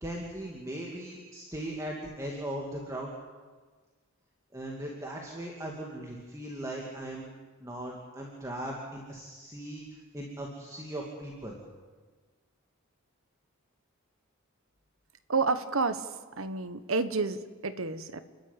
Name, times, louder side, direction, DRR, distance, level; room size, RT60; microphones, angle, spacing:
voice 1, 0.0-3.1 4.5-7.3 7.6-11.5, right 1 dB, 15° right, -2 dB, 2.4 m, -38 dB
voice 2, 15.3-16.1 16.4-18.2, right 4 dB, 75° right, 10 dB, 1.3 m, -30 dB
30.0 x 12.0 x 9.1 m, 1.4 s
head